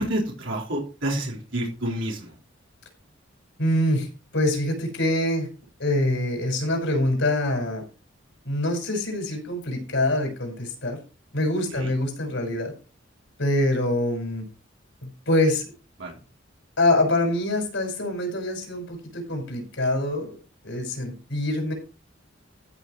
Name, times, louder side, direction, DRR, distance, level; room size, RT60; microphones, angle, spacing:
voice 1, 0.0-2.4 11.7-11.9 16.0-16.1, right 1 dB, 70° right, -2 dB, 3.9 m, -29 dB
voice 2, 3.6-4.1 4.3-5.5 5.8-7.8 8.4-11.0 11.3-12.7 13.4-14.4 15.0-15.6 16.8-20.3 20.6-21.7, left 1 dB, 70° left, 4 dB, 5.7 m, -25 dB
15.0 x 6.5 x 4.7 m, 0.34 s
head